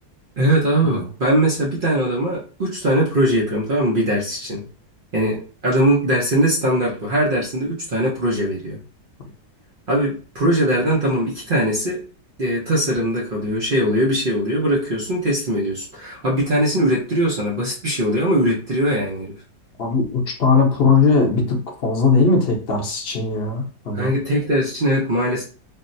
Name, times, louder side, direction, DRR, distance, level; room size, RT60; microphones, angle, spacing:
voice 1, 0.4-4.7 5.1-8.8 9.9-12.0 12.4-19.4 23.9-25.4, right 1 dB, 80° right, -3 dB, 0.4 m, -21 dB
voice 2, 19.8-24.2, left 4 dB, 50° left, 1 dB, 0.7 m, -19 dB
3.8 x 2.0 x 2.6 m, 0.39 s
omnidirectional pair, 1.8 m